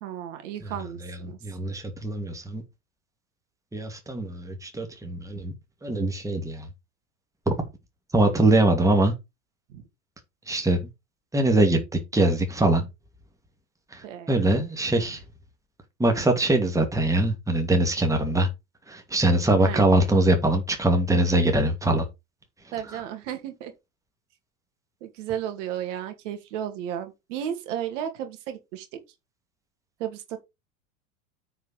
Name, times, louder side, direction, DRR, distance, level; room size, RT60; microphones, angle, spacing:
voice 1, 0.0-1.4 8.2-8.6 9.7-9.8 14.0-14.3 19.6-19.8 22.7-23.7 25.0-29.0 30.0-30.4, right 10 dB, 55° right, 2.4 m, -34 dB
voice 2, 1.0-2.6 3.7-5.5 5.8-6.7 7.5-7.6 8.1-9.1 10.5-10.8 11.3-11.8 12.1-12.9 13.9-15.2 16.0-18.5 18.9-22.0, right 1 dB, 5° right, 2.5 m, -22 dB
9.3 x 4.8 x 5.2 m
figure-of-eight pair, 80°, 43 cm